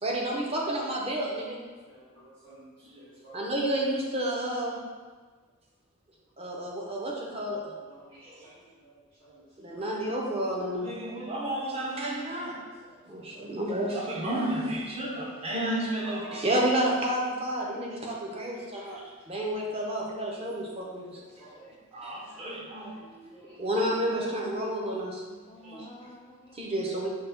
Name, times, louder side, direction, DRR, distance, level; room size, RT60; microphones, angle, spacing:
voice 1, 0.0-1.6 3.3-4.8 6.4-7.8 8.3-8.4 9.6-12.7 13.0-21.5 21.9-23.0 23.5-25.2 25.6-25.9 26.5-27.1, right 1 dB, 25° right, -2 dB, 0.5 m, -31 dB
voice 2, 1.9-3.5 7.2-7.3 7.8-8.9 9.2-10.1 10.5-10.6 12.8-12.9 13.3-13.5 16.0-16.5 18.5-18.9 21.4-21.7 22.3-22.4 22.9-23.5, right 1 dB, 65° right, -12 dB, 1.2 m, -51 dB
voice 3, 24.2-26.7, left 1 dB, 25° left, 2 dB, 0.3 m, -51 dB
5.6 x 2.1 x 3.4 m, 1.4 s
head